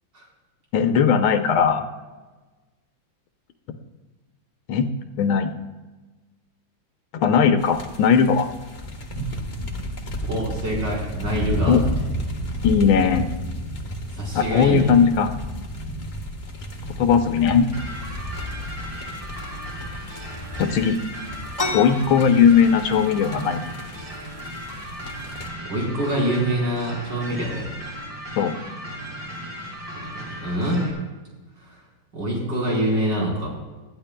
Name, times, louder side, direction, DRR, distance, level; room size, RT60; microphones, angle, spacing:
voice 1, 0.7-1.8 4.7-4.9 5.2-5.5 7.1-8.5 11.7-11.8 12.6-13.3 14.3-15.3 17.0-17.7 20.6-21.0 21.7-23.7 28.4-28.5, left 6 dB, 85° left, 6 dB, 1.6 m, -18 dB
sound 1, 7.6-25.5, equal, 35° left, 1.4 m, -32 dB
voice 2, 10.2-12.0 14.1-14.9 25.6-27.7 30.3-30.9 31.6-31.8 32.1-33.5, right 1 dB, 60° right, -4 dB, 5.0 m, -25 dB
sound 2, 17.7-30.9, equal, 30° right, 3.1 m, -36 dB
sound 3, 21.5-30.9, left 3 dB, 20° left, 1.7 m, -38 dB
20.5 x 13.5 x 2.2 m, 1.2 s
omnidirectional pair, 2.2 m